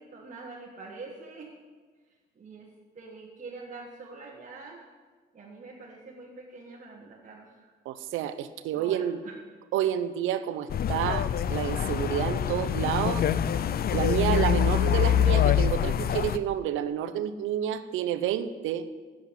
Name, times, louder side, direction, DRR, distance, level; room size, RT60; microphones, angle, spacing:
voice 1, 0.0-1.5 2.3-4.9 5.3-7.7 8.7-9.4, right 3 dB, 40° right, -1 dB, 1.5 m, -45 dB
voice 2, 7.9-9.2 9.7-13.3 13.9-18.9, right 10 dB, 90° right, 13 dB, 0.7 m, -29 dB
sound 1, 10.7-16.4, left 9 dB, 50° left, 0.5 m, -25 dB
8.0 x 7.8 x 8.7 m, 1.4 s
cardioid pair, 90°, 20 cm